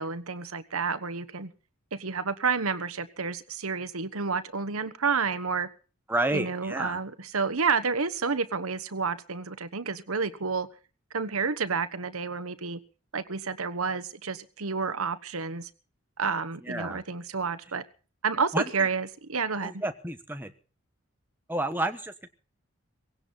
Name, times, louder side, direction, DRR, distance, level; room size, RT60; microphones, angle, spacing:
voice 1, 0.0-1.5 1.9-5.7 6.3-10.7 11.1-12.8 13.1-15.7 16.2-17.8 18.2-19.8, right 5 dB, 90° right, 13 dB, 1.3 m, -30 dB
voice 2, 6.1-7.0 16.6-17.0 18.5-18.9 19.6-20.5 21.5-22.3, right 1 dB, 10° right, 7 dB, 1.2 m, -30 dB
18.5 x 17.0 x 4.0 m, 0.37 s
head